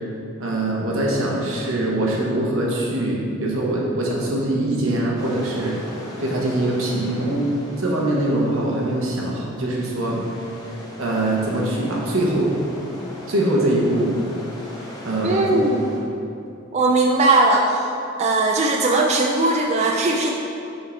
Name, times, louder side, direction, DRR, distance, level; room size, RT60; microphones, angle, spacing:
voice 1, 0.4-5.8 6.2-7.5 7.8-10.2 11.0-12.5 13.3-14.1 15.0-15.6, right 1 dB, 85° right, -3 dB, 1.1 m, -22 dB
sound 1, 5.2-16.0, left 1 dB, 20° left, 1.0 m, -39 dB
voice 2, 15.2-15.9 16.7-17.9 18.2-20.3, right 2 dB, 35° right, 0 dB, 0.4 m, -19 dB
5.9 x 3.7 x 4.4 m, 2.6 s
head